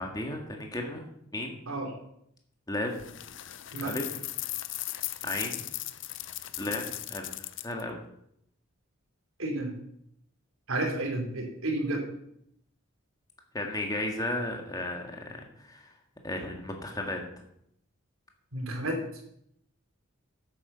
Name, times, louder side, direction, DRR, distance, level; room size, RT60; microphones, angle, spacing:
voice 1, 0.0-1.6 2.7-3.0 3.8-4.2 5.2-5.7 6.6-8.0 13.5-15.9 16.2-17.2, left 1 dB, 15° left, 2 dB, 1.8 m, -34 dB
sound 1, 2.9-7.8, left 15 dB, 60° left, 0.6 m, -37 dB
voice 2, 9.4-9.7 10.7-12.1 18.5-19.0, right 2 dB, 80° right, 2 dB, 3.1 m, -31 dB
9.2 x 8.5 x 6.9 m, 0.74 s
head